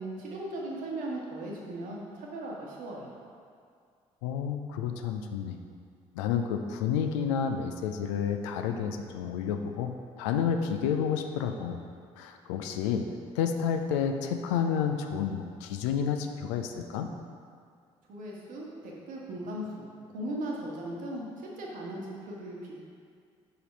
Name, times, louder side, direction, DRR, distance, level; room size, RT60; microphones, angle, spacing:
voice 1, 0.0-3.1 18.1-22.8, right 1 dB, 55° right, -2 dB, 1.2 m, -38 dB
voice 2, 4.2-5.6 6.2-11.8 12.2-13.1 13.4-17.1, left 7 dB, 70° left, 6 dB, 0.4 m, -30 dB
5.6 x 4.2 x 5.1 m, 2.2 s
figure-of-eight pair, 45°, 16 cm